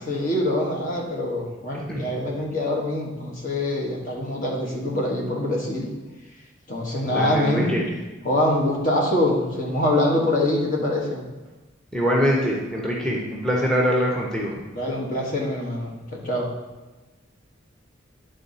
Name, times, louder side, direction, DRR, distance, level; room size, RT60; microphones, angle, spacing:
voice 1, 0.1-5.9 6.7-8.0 8.2-11.2 14.7-16.5, left 1 dB, 45° left, -2 dB, 1.5 m, -24 dB
voice 2, 7.1-7.8 11.9-14.5, equal, 5° left, -3 dB, 0.9 m, -23 dB
10.5 x 3.8 x 4.1 m, 1.2 s
head